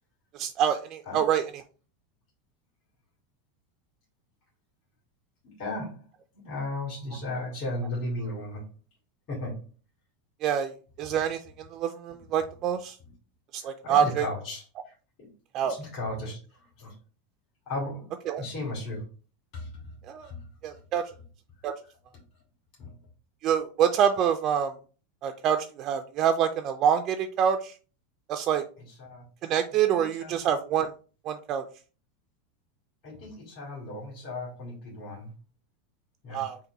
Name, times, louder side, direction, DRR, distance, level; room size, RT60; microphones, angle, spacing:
voice 1, 0.3-1.6 10.4-10.7 11.0-13.0 13.5-14.3 15.5-15.8 18.3-18.4 20.0-20.3 20.6-21.0 21.6-21.7 23.4-24.7 25.2-27.8 28.3-28.6 29.4-30.9 31.2-31.7 36.3-36.6, right 8 dB, 30° right, 6 dB, 0.3 m, -26 dB
voice 2, 5.4-6.0 6.3-8.6 9.3-9.5 13.8-14.6 15.2-15.3 15.7-16.4 16.8-16.9 17.7-18.1 18.4-19.0 19.5-19.7 20.2-20.4 22.8-22.9 29.0-29.2 29.9-30.3 33.0-35.3 36.2-36.4, left 2 dB, 45° left, -3 dB, 2.3 m, -35 dB
3.9 x 2.6 x 4.7 m, 0.37 s
supercardioid pair, 160°, 0 cm